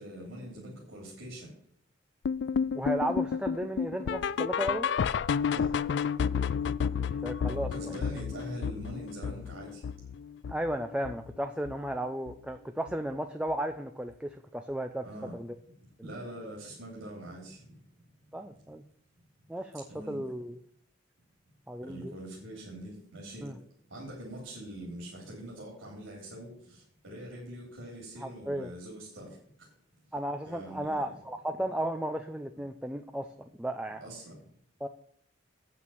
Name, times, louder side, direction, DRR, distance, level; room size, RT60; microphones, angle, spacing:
voice 1, 0.0-1.5 2.7-2.8 5.5-5.7 7.5-9.8 15.0-15.4 16.0-17.6 19.9-20.2 21.8-23.5 23.9-29.4 30.4-31.0 34.0-34.4, right 1 dB, 90° right, -3 dB, 3.3 m, -43 dB
sound 1, 2.2-11.4 11.7-12.0 12.3-12.4 12.9-13.0 13.5-13.6, left 6 dB, 60° left, 0.3 m, -31 dB
voice 2, 2.7-4.9 6.9-7.9 10.5-15.1 15.3-15.6 16.0-16.1 18.3-18.8 19.5-20.6 21.7-22.1 23.4-23.5 28.2-28.7 30.1-34.0 34.8-34.9, right 1 dB, 5° right, 6 dB, 0.5 m, -34 dB
8.6 x 6.3 x 7.0 m, 0.63 s
head